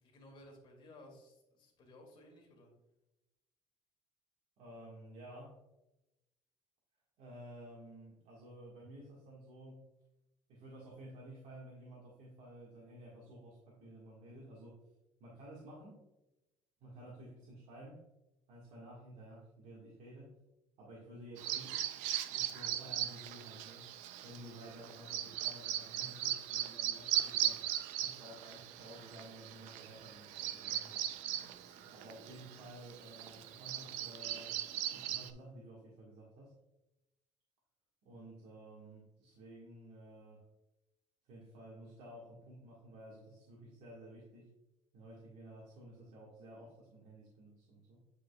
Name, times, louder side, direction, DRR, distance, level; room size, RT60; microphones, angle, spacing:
voice 1, 0.0-2.7 30.5-30.9 31.4-31.9, left 1 dB, 45° left, 0 dB, 2.2 m, -58 dB
voice 2, 4.6-5.6 7.2-9.9 10.5-14.8 15.2-16.1 16.8-18.0 18.5-20.3 20.8-21.8 22.3-23.9 24.2-31.0 31.9-34.5 34.9-36.5 38.0-40.4 41.2-44.5 44.9-48.0, right 1 dB, 65° right, -5 dB, 1.7 m, -53 dB
Bird vocalization bird call bird song, 21.4-35.3, right 12 dB, 85° right, 0.5 m, -39 dB
9.2 x 5.0 x 2.3 m, 0.96 s
cardioid pair, 145°, 12 cm